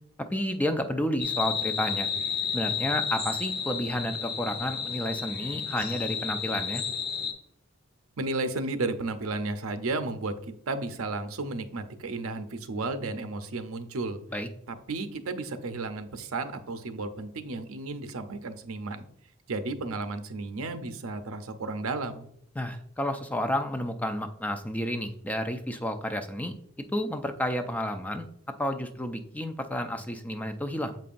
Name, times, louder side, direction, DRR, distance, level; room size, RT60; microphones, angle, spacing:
voice 1, 0.3-2.1 2.5-6.8 14.3-14.5 22.6-26.5 26.9-28.3 28.6-31.0, left 1 dB, 5° left, 7 dB, 0.4 m, -31 dB
sound 1, 1.2-7.3, left 7 dB, 45° left, 1.1 m, -32 dB
voice 2, 8.2-14.2 14.7-19.1 19.5-22.3, right 3 dB, 75° right, 8 dB, 0.7 m, -33 dB
7.5 x 5.4 x 2.5 m, 0.68 s
head